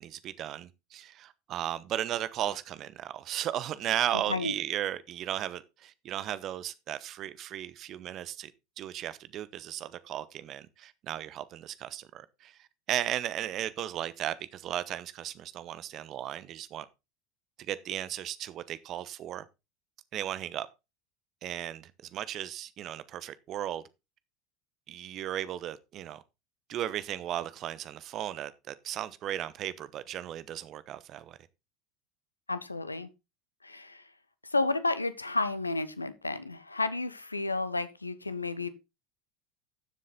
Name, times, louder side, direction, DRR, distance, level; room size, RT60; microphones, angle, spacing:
voice 1, 0.0-8.5 8.8-16.9 17.6-19.5 20.1-20.7 21.4-23.8 24.9-26.2 26.7-31.4, right 11 dB, 40° right, 1.0 m, -35 dB
voice 2, 32.5-33.1 33.6-34.0 34.5-38.7, left 3 dB, 85° left, 0.9 m, -31 dB
12.5 x 7.5 x 3.8 m
figure-of-eight pair, 75°, 0 cm